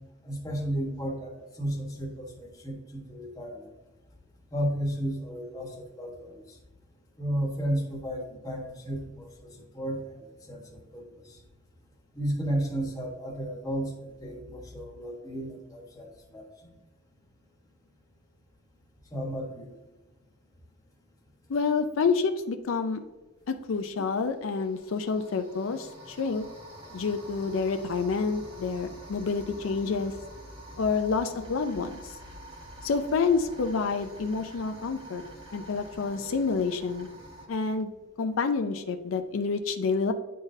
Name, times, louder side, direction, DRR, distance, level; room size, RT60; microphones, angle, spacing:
voice 1, 0.2-1.3 1.6-3.7 4.5-6.4 7.2-9.5 9.7-10.0 10.5-10.6 10.9-11.0 12.1-13.9 14.2-16.1 16.3-16.4 19.1-19.7 26.2-26.3, right 1 dB, 20° left, 0 dB, 1.2 m, -33 dB
voice 2, 21.5-23.0 23.5-26.4 26.9-30.1 30.8-32.1 32.8-35.2 35.5-37.1 37.5-37.9 38.2-40.1, left 4 dB, 80° left, 7 dB, 0.4 m, -28 dB
sound 1, 23.4-23.6 24.1-37.5, right 1 dB, 25° right, 1.6 m, -47 dB
9.3 x 3.8 x 2.7 m, 1.1 s
head